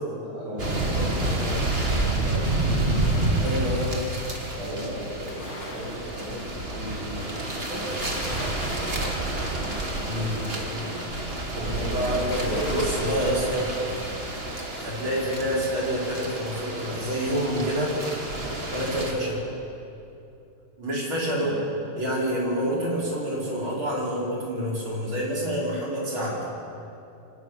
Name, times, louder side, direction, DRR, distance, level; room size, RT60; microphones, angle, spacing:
voice 1, 0.2-3.6 4.5-13.0 21.4-21.6, equal, 90° right, -4 dB, 7.8 m, -37 dB
sound 1, 0.6-19.1, right 2 dB, 30° right, 2.4 m, -29 dB
sound 2, 2.4-15.2, left 2 dB, 70° left, 3.3 m, -46 dB
voice 2, 3.4-3.9 10.1-10.5 11.5-13.7 14.8-17.9 18.7-19.4 20.8-21.5 22.0-26.4, equal, 75° right, -4 dB, 5.7 m, -27 dB
25.0 x 13.0 x 9.5 m, 2.8 s
omnidirectional pair, 2.3 m